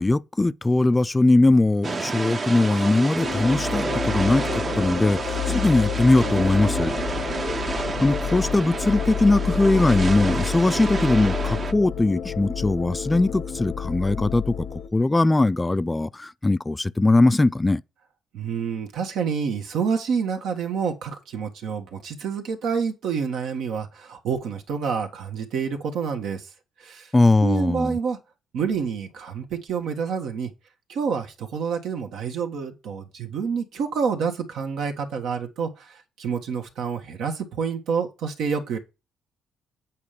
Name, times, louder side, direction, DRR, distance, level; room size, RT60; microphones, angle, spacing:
voice 1, 0.0-6.9 8.0-17.8 27.1-28.0, left 2 dB, 15° left, 0.3 m, -20 dB
sound 1, 1.8-11.7, right 4 dB, 40° right, 0.8 m, -29 dB
sound 2, 3.2-14.9, left 8 dB, 75° left, 0.8 m, -30 dB
voice 2, 18.3-26.5 26.8-27.1 27.4-28.2 28.5-30.5 30.9-38.8, right 6 dB, 80° right, 1.4 m, -28 dB
8.4 x 4.5 x 5.1 m
cardioid pair, 90°, 0 cm